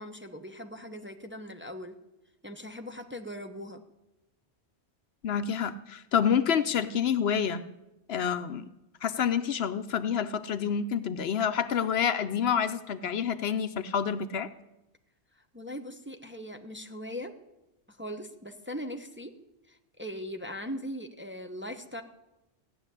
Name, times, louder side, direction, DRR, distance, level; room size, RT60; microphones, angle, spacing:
voice 1, 0.0-1.9 2.4-3.8 15.5-17.3 17.9-19.3 19.7-22.0, equal, 10° right, 4 dB, 0.8 m, -40 dB
voice 2, 5.2-7.7 8.1-8.7 9.0-14.5, left 7 dB, 70° left, 12 dB, 0.9 m, -28 dB
15.5 x 7.2 x 9.8 m, 0.96 s
omnidirectional pair, 1.1 m